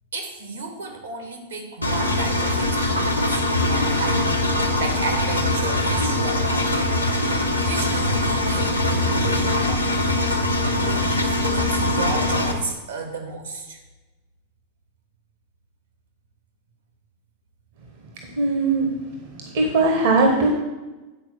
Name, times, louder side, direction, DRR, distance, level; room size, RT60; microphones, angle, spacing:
voice 1, 0.1-3.4 3.7-6.9 7.6-9.9 10.8-13.8, right 3 dB, 75° right, 3 dB, 1.5 m, -32 dB
Engine, 1.8-12.5, left 1 dB, 90° left, 0.9 m, -22 dB
voice 2, 18.4-18.9 19.5-20.5, right 3 dB, 55° right, 1 dB, 1.1 m, -19 dB
9.0 x 4.4 x 6.0 m, 1.1 s
figure-of-eight pair, 90°, 0 cm